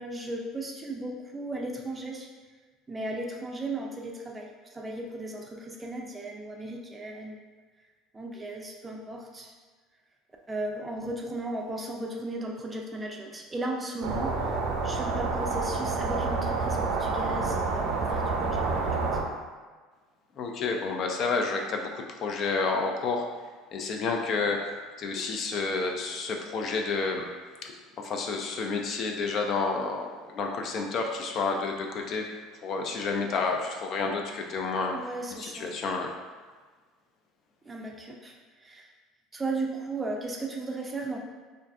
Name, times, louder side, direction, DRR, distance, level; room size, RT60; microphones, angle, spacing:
voice 1, 0.0-2.3 2.9-7.4 8.1-9.5 10.5-14.5 14.8-19.0 34.9-35.7 37.7-38.9 39.3-41.2, right 2 dB, 20° right, 0 dB, 0.4 m, -36 dB
sound 1, 14.0-19.2, right 4 dB, 70° right, 0.5 m, -28 dB
voice 2, 20.4-23.2 23.7-24.6 25.0-27.3 27.6-32.3 32.6-35.0 35.4-36.1, left 4 dB, 50° left, 3 dB, 0.4 m, -30 dB
2.5 x 2.4 x 3.3 m, 1.4 s
supercardioid pair, 105°, 0 cm